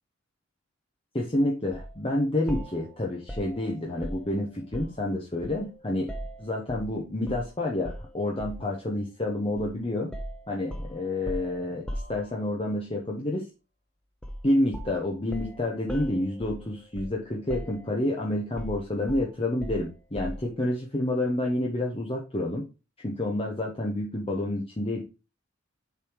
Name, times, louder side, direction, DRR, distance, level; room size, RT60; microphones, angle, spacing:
voice 1, 1.1-6.1 6.4-10.1 10.5-11.8 12.1-13.4 14.4-22.6 23.0-25.0, left 1 dB, 25° left, -1 dB, 0.9 m, -29 dB
sound 1, 1.7-1.9 2.5-5.1 5.4-6.9 7.3-7.5 7.8-8.7 9.6-9.8 10.1-12.7 14.2-14.5 14.7-17.2 17.5-18.1 18.6-20.5, equal, 5° left, 0.7 m, -39 dB
6.8 x 3.4 x 4.5 m, 0.30 s
head